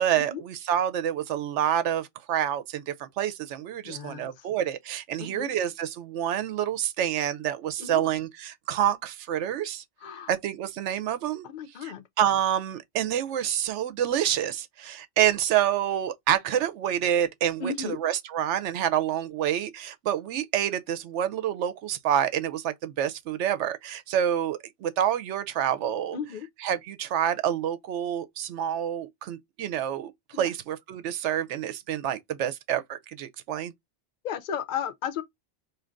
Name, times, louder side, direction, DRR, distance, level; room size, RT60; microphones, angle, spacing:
voice 1, 0.0-9.8 10.3-11.5 11.8-26.2 26.6-33.7, right 10 dB, 85° right, 0.9 m, -28 dB
voice 2, 3.8-4.3 5.2-5.5 7.8-8.0 10.0-10.3 11.4-12.0 17.6-18.0 26.1-26.5 30.3-30.5 34.2-35.2, left 7 dB, 55° left, 0.6 m, -34 dB
4.4 x 2.8 x 2.4 m
omnidirectional pair, 1.2 m